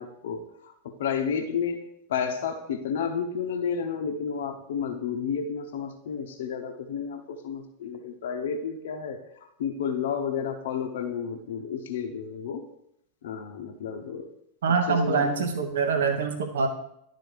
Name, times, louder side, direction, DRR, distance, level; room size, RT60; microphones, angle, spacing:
voice 1, 0.0-9.2 9.6-12.6 13.2-14.3 14.9-15.3, left 7 dB, 60° left, 5 dB, 0.9 m, -31 dB
voice 2, 14.6-16.7, right 5 dB, 60° right, 7 dB, 0.9 m, -24 dB
11.5 x 4.2 x 4.8 m, 0.74 s
figure-of-eight pair, 90°, 0 cm